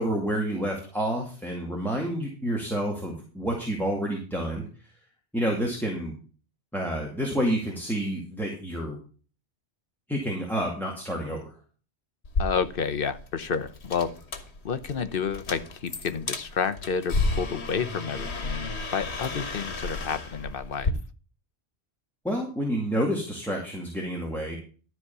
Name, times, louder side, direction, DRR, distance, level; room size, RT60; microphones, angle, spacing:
voice 1, 0.0-4.7 5.3-6.1 6.7-9.0 10.1-11.5 22.2-24.6, right 1 dB, ahead, -1 dB, 2.1 m, -29 dB
sound 1, 12.2-20.9, left 3 dB, 80° left, 1.7 m, -32 dB
voice 2, 12.4-14.1 14.6-20.9, left 6 dB, 60° left, 11 dB, 1.1 m, -30 dB
12.5 x 4.8 x 6.8 m, 0.38 s
omnidirectional pair, 1.1 m